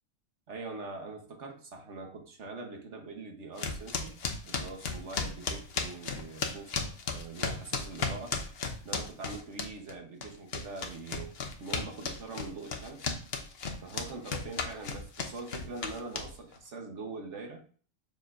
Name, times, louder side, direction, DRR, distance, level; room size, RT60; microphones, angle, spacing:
voice 1, 0.5-4.2 4.5-8.4 8.8-11.3 11.6-13.1 13.8-17.6, right 3 dB, 60° right, 3 dB, 1.5 m, -43 dB
sound 1, 3.6-9.9 10.2-16.6, left 5 dB, 55° left, 1.0 m, -35 dB
7.1 x 5.7 x 2.6 m, 0.42 s
omnidirectional pair, 1.4 m